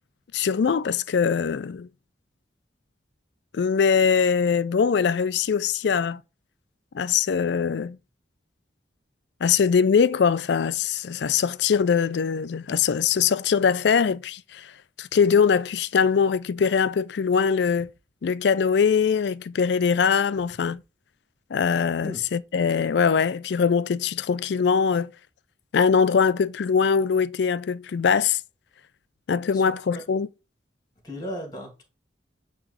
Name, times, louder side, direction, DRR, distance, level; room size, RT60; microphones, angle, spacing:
voice 1, 0.3-1.9 3.5-6.2 6.9-8.0 9.4-14.7 15.0-17.9 18.2-20.8 21.5-25.1 25.7-28.4 29.3-30.3, left 6 dB, 65° left, 0.4 m, -22 dB
voice 2, 29.5-30.0 31.0-31.8, equal, 20° left, 2.0 m, -36 dB
8.7 x 3.0 x 3.9 m
head